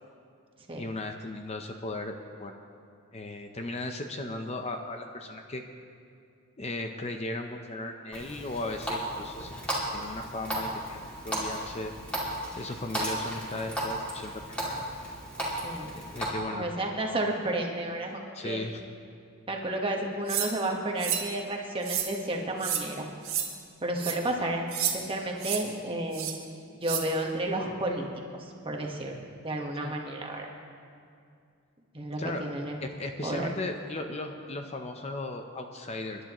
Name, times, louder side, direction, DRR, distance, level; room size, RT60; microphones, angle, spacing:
voice 1, 0.7-2.6 3.1-5.6 6.6-11.0 11.2-11.9 12.5-15.0 16.0-16.7 18.3-18.8 29.8-29.9 32.2-32.4 32.8-36.2, left 2 dB, 30° left, 5 dB, 0.7 m, -36 dB
Water tap faucet, 8.1-16.3, right 1 dB, 5° left, 2.5 m, -35 dB
voice 2, 15.6-16.0 16.5-18.6 19.5-23.1 23.8-24.7 24.9-26.3 26.7-28.1 28.4-29.2 29.4-30.5 31.9-32.8 33.2-33.5, right 1 dB, 25° right, 0 dB, 1.3 m, -32 dB
sound 1, 20.3-20.5 21.0-21.3 21.8-22.1 22.6-22.8 23.2-23.5 24.0-24.1 24.7-24.9 25.4-25.6 26.1-26.3 26.8-27.0, right 9 dB, 75° right, 1.6 m, -30 dB
25.5 x 11.0 x 3.0 m, 2.4 s
head